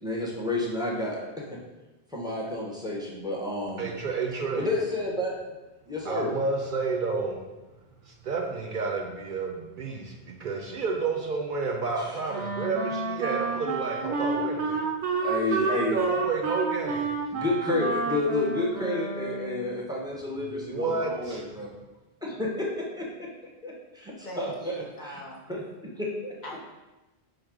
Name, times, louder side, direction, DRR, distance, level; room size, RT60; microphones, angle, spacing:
voice 1, 0.0-1.4 2.1-3.9 4.5-5.4 5.9-6.3 12.0-12.1 15.2-16.0 17.3-21.7 22.2-23.3 23.6-25.2 25.5-25.6 26.0-26.3, left 2 dB, 5° right, -3 dB, 0.5 m, -30 dB
voice 2, 3.8-4.7 6.1-7.4 8.0-14.9 15.6-17.1 20.4-21.5, right 4 dB, 60° right, 0 dB, 0.6 m, -30 dB
Wind instrument woodwind instrument, 12.3-19.7, right 4 dB, 85° right, 0.9 m, -30 dB
voice 3, 24.2-25.4 26.4-26.6, left 1 dB, 50° left, -2 dB, 0.7 m, -41 dB
4.7 x 2.1 x 4.7 m, 1.1 s
omnidirectional pair, 1.1 m